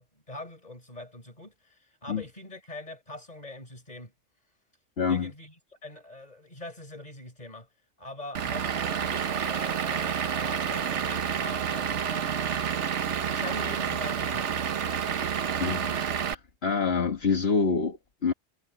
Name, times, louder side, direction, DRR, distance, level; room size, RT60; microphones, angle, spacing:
voice 1, 0.0-4.1 5.1-5.5 5.8-7.7 8.0-12.4 13.3-14.6, left 2 dB, 35° left, 4.6 m, -43 dB
voice 2, 5.0-5.3 15.6-16.0 16.3-18.3, left 5 dB, 60° left, 1.8 m, -26 dB
Vehicle / Engine, 8.3-16.3, right 8 dB, 80° right, 1.3 m, -29 dB
omnidirectional pair, 1.2 m